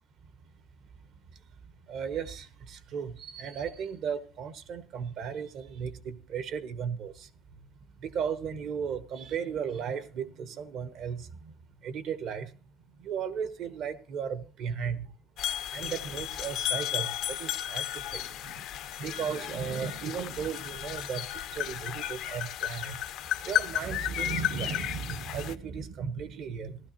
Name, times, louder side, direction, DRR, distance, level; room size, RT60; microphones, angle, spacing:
voice 1, 1.9-7.3 8.0-11.5 11.8-12.5 13.0-15.1 15.7-18.6 19.0-21.3 21.5-23.0 23.4-26.8, right 7 dB, 65° right, 1.0 m, -35 dB
sound 1, 15.4-25.5, left 12 dB, 65° left, 0.5 m, -34 dB
15.5 x 12.5 x 2.9 m
cardioid pair, 120°, 0 cm